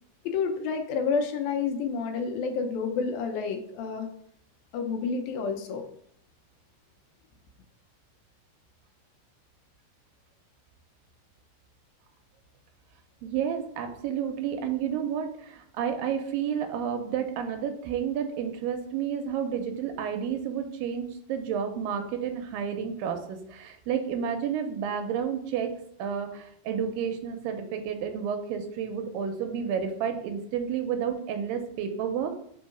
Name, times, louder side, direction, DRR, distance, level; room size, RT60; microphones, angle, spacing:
voice 1, 0.2-4.1 4.7-5.9, left 5 dB, 85° left, 4 dB, 2.5 m, -29 dB
voice 2, 13.2-25.7 26.0-32.3, right 8 dB, 85° right, 5 dB, 2.3 m, -31 dB
5.4 x 3.8 x 5.0 m, 0.65 s
omnidirectional pair, 4.2 m